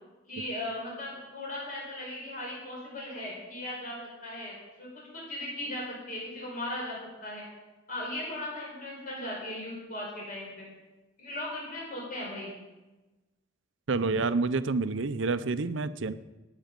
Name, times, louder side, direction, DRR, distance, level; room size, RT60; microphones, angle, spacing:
voice 1, 0.3-7.4 7.9-10.7 11.2-12.6, left 1 dB, 40° left, -4 dB, 4.8 m, -38 dB
voice 2, 13.9-16.1, right 3 dB, 70° right, 13 dB, 0.7 m, -28 dB
20.0 x 8.3 x 5.3 m, 1.1 s
head